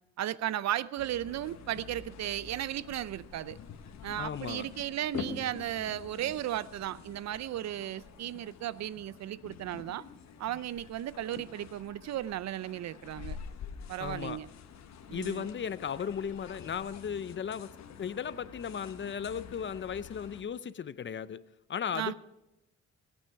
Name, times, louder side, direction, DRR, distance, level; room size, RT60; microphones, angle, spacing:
voice 1, 0.2-3.6 4.0-10.0 10.4-13.4 13.9-14.5 15.1-15.5 21.9-22.1, right 12 dB, 60° right, 0.5 m, -35 dB
sound 1, 1.0-20.4, left 7 dB, 65° left, 1.3 m, -47 dB
voice 2, 4.2-4.7 14.0-14.4 15.1-17.7 18.0-21.4 21.7-22.1, left 7 dB, 40° left, 0.6 m, -36 dB
19.0 x 9.0 x 4.6 m
cardioid pair, 90°, 30 cm